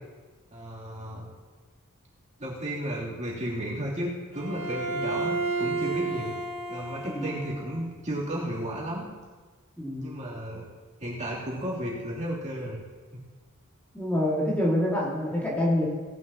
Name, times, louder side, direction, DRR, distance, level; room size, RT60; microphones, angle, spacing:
voice 1, 0.5-1.3 2.4-6.4 6.7-9.0 10.0-10.6 11.0-12.8, equal, 35° right, -6 dB, 3.2 m, -33 dB
Bowed string instrument, 4.3-7.8, right 3 dB, 60° right, 1.9 m, -32 dB
voice 2, 9.8-10.2 13.9-15.9, left 1 dB, 5° left, -6 dB, 2.3 m, -26 dB
18.5 x 11.5 x 3.0 m, 1.4 s
head